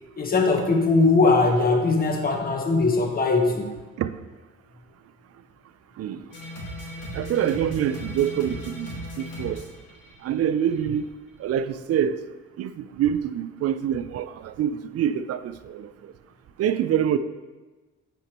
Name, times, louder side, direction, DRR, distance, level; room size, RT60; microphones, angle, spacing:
voice 1, 0.2-3.7, left 3 dB, 30° left, 1.0 m, -20 dB
sound 1, 6.3-10.8, left 1 dB, 90° left, 1.7 m, -37 dB
voice 2, 7.1-8.9 9.2-9.6 10.2-11.1 11.4-12.2 12.6-15.9 16.6-17.2, right 9 dB, 55° right, 0.4 m, -25 dB
6.8 x 5.9 x 2.9 m
cardioid pair, 90°, 30 cm